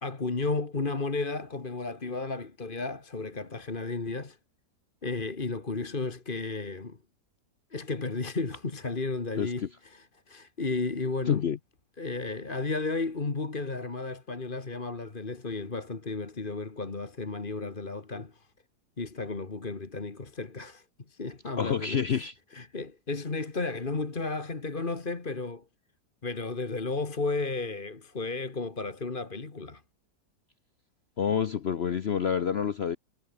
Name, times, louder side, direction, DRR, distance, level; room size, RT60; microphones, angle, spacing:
voice 1, 0.0-4.4 5.0-7.0 7.7-11.4 12.0-18.5 19.0-25.7 26.2-29.8, left 3 dB, 30° left, 2.0 m, -33 dB
voice 2, 11.3-11.6 21.6-22.3 31.2-33.0, left 7 dB, 55° left, 0.7 m, -27 dB
omnidirectional pair, 1.9 m